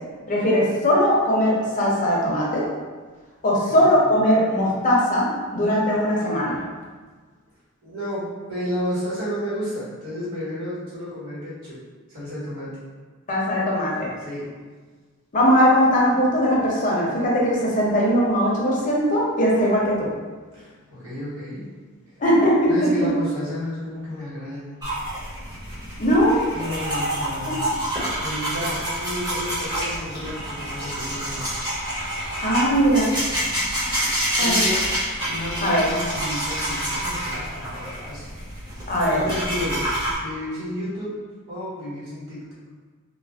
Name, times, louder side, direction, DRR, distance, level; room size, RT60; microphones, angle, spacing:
voice 1, 0.3-2.6 3.4-6.6 13.3-14.1 15.3-20.1 22.2-23.1 26.0-26.4 27.5-27.6 32.4-33.1 34.4-34.6 35.6-35.9 38.9-39.2, equal, 40° left, -4 dB, 0.6 m, -20 dB
voice 2, 7.8-11.8 12.1-12.7 14.2-14.6 20.5-21.7 22.7-25.0 26.5-31.4 33.8-34.1 34.4-34.9 35.2-38.3 39.0-39.9 40.2-41.1 41.5-42.5, left 1 dB, 70° right, -9 dB, 1.3 m, -32 dB
brushing teeth, 24.8-40.2, equal, 20° right, 1.2 m, -27 dB
2.4 x 2.1 x 3.3 m, 1.5 s
head